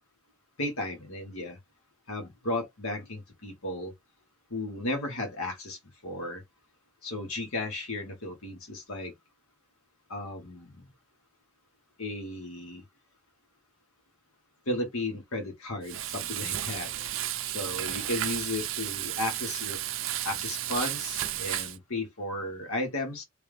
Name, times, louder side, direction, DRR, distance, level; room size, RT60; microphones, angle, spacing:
voice 1, 0.6-1.6 2.1-3.9 4.5-6.4 7.0-9.1 10.1-10.9 12.0-12.8 14.6-16.9 17.5-19.8 20.2-23.2, left 2 dB, 80° left, 1.5 m, -34 dB
Frying (food), 15.8-21.8, right 13 dB, 60° right, 0.4 m, -33 dB
3.3 x 2.5 x 3.3 m
head